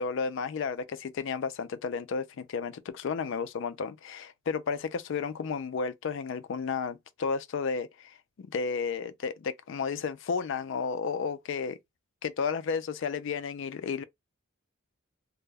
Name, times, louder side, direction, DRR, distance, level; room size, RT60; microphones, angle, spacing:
voice 1, 0.0-11.8 12.2-14.0, left 5 dB, 60° left, 0.3 m, -32 dB
2.2 x 2.0 x 3.3 m
head